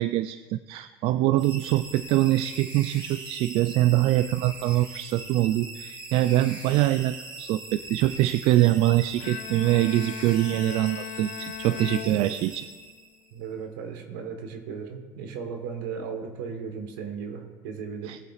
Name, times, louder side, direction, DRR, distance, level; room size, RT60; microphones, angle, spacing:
voice 1, 0.0-12.7 18.1-18.2, right 15 dB, 65° right, 13 dB, 0.4 m, -24 dB
sound 1, 1.4-13.3, right 2 dB, 50° right, 3.0 m, -41 dB
Bowed string instrument, 9.2-12.9, left 13 dB, 75° left, 0.5 m, -38 dB
voice 2, 13.3-18.2, right 6 dB, 85° right, 5 dB, 1.4 m, -36 dB
18.5 x 7.9 x 2.5 m, 1.4 s
supercardioid pair, 75°, 10 cm